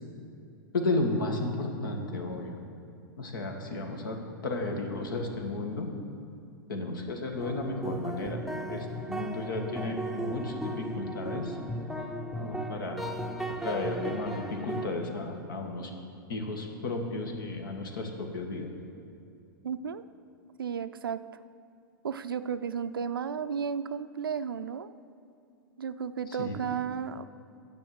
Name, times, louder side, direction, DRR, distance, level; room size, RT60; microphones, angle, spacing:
voice 1, 0.7-2.5 3.2-4.2 4.4-5.9 6.7-8.4 8.7-11.6 12.4-13.0 13.6-15.9 16.3-18.7 26.4-26.6, left 2 dB, 70° left, 3 dB, 1.7 m, -33 dB
sound 1, 7.4-14.9, right 1 dB, ahead, 0.7 m, -36 dB
voice 2, 19.6-20.0 20.6-21.2 22.0-24.9 25.8-27.2, right 7 dB, 85° right, 12 dB, 0.5 m, -33 dB
9.7 x 7.0 x 7.8 m, 2.6 s
hypercardioid pair, 100°, 11 cm